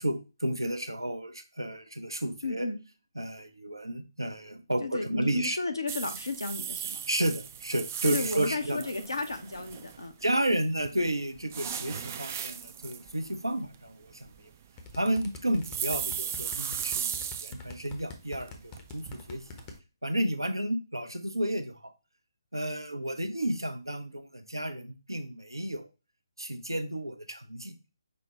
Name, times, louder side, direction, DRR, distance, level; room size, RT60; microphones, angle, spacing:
voice 1, 0.0-2.7 3.2-5.6 7.1-8.8 10.2-14.5 14.9-19.6 20.0-21.9 22.5-25.9 26.4-27.8, right 1 dB, 85° right, 8 dB, 0.7 m, -32 dB
voice 2, 2.4-2.8 4.8-7.0 8.0-10.1, left 3 dB, 70° left, 6 dB, 0.9 m, -33 dB
sound 1, 5.9-10.2 10.8-17.9 18.3-19.8, right 8 dB, 35° right, 0.3 m, -37 dB
sound 2, 14.8-19.7, left 3 dB, 20° left, 0.7 m, -43 dB
5.4 x 2.2 x 4.2 m, 0.30 s
figure-of-eight pair, 140°, 2 cm